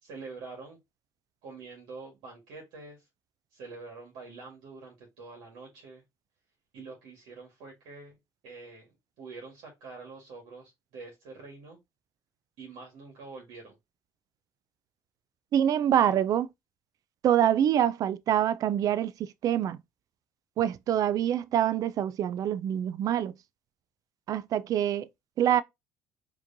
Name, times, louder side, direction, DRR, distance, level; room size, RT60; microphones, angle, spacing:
voice 1, 0.0-0.8 1.4-3.1 3.5-6.0 6.7-8.2 8.4-8.9 9.2-11.8 12.6-13.7, right 4 dB, 75° right, 1.6 m, -46 dB
voice 2, 15.5-16.5 17.2-19.8 20.6-23.3 24.3-25.1 25.4-25.6, right 10 dB, 50° right, 0.4 m, -25 dB
4.9 x 3.1 x 2.6 m
supercardioid pair, 90°, 8 cm